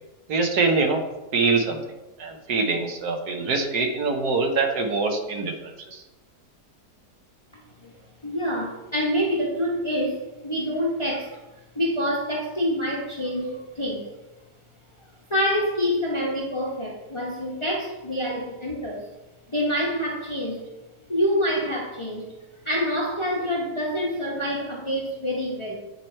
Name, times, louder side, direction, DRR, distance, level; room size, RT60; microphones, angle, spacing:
voice 1, 0.3-1.0 1.3-1.8 2.2-6.0, right 3 dB, 70° right, 4 dB, 1.3 m, -24 dB
voice 2, 8.2-11.4 11.7-14.1 15.3-19.1 19.5-20.7 21.1-22.3 22.6-25.7, equal, 25° left, -3 dB, 0.7 m, -26 dB
8.8 x 3.1 x 4.3 m, 1.0 s
omnidirectional pair, 1.8 m